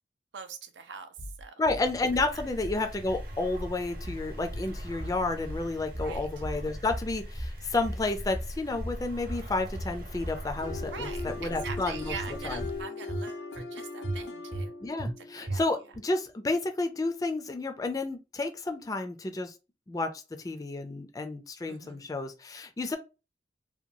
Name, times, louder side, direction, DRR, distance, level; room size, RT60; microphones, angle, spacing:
voice 1, 0.3-1.1 1.4-1.5 2.3-2.4 6.0-6.3 10.9-14.7 15.4-15.6 21.7-22.1, right 6 dB, 90° right, 0.5 m, -43 dB
sound 1, 1.2-1.8 2.1-2.8 3.1-3.8 4.0-4.7 5.0-5.7 5.9-6.6 6.9-7.6 7.8-8.5 8.8-9.5 9.7-10.4 10.7-11.4 11.7-12.3 12.6-13.3 13.5-13.7 14.0-14.7 15.0-15.1 15.5-16.0, right 1 dB, 40° right, 0.5 m, -37 dB
voice 2, 1.6-12.2 12.4-12.7 14.8-19.5 19.9-23.0, left 2 dB, 20° left, 0.3 m, -31 dB
sound 2, 1.8-12.8, equal, 55° right, 0.9 m, -41 dB
sound 3, 10.6-16.4, left 3 dB, 80° left, 0.4 m, -40 dB
2.8 x 2.2 x 2.6 m
head